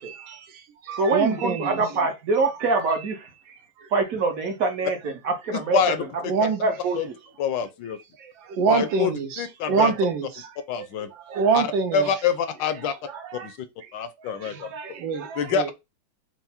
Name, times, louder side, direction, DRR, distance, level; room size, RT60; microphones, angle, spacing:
voice 1, 0.0-1.8 2.6-2.8 3.5-3.9 6.2-6.6 8.2-10.5 10.8-10.9 11.3-12.1 12.8-13.5 14.2-15.7, right 5 dB, 85° right, 1.5 m, -26 dB
voice 2, 1.0-3.3 3.9-5.8 6.1-7.0, right 3 dB, 55° right, 1.1 m, -25 dB
voice 3, 5.7-6.3 7.0-7.1 7.4-8.0 8.7-9.9 10.7-11.1 11.5-11.7 11.9-12.9 13.4-13.7 13.9-14.7 15.4-15.7, left 6 dB, 75° left, 1.3 m, -26 dB
4.6 x 2.0 x 4.1 m
omnidirectional pair, 2.1 m